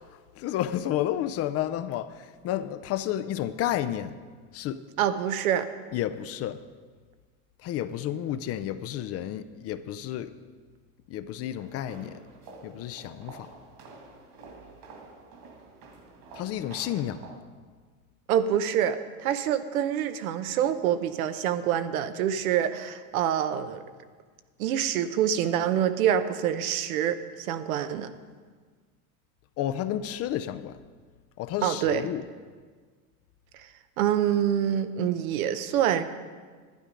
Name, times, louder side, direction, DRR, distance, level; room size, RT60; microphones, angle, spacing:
voice 1, 0.4-4.1 4.5-4.8 5.9-6.6 7.6-10.3 11.1-12.2 12.6-13.5 16.3-17.2 29.6-30.8 31.4-32.2, left 11 dB, 35° left, 0.5 m, -31 dB
voice 2, 5.0-5.7 18.3-23.8 24.6-28.1 31.6-32.0 33.5-33.7 34.0-36.0, right 9 dB, 80° right, 0.9 m, -26 dB
sound 1, 11.6-17.4, right 3 dB, 55° right, 2.3 m, -48 dB
12.0 x 9.8 x 5.1 m
supercardioid pair, 120°, 42 cm